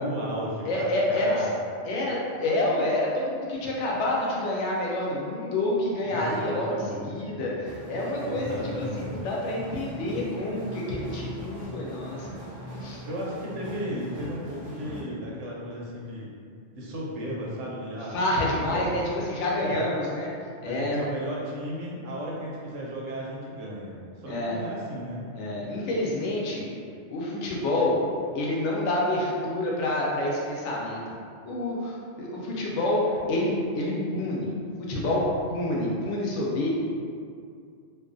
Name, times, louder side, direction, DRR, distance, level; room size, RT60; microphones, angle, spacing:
voice 1, 0.0-1.5 6.0-7.4 8.2-9.1 13.1-16.3 16.7-18.2 18.6-19.0 19.6-19.9 20.6-25.3, equal, 80° right, -4 dB, 0.9 m, -35 dB
voice 2, 0.7-1.5 1.8-6.8 7.1-12.3 12.8-13.0 18.1-20.3 20.6-21.0 24.3-24.6 25.3-26.7 27.1-28.0 28.3-31.0 31.4-33.5 33.7-34.5 34.9-35.2 35.5-36.7, left 1 dB, 75° left, -4 dB, 0.9 m, -28 dB
sound 1, 7.6-15.0, equal, 60° right, 0.4 m, -40 dB
2.6 x 2.3 x 2.5 m, 2.3 s
omnidirectional pair, 1.2 m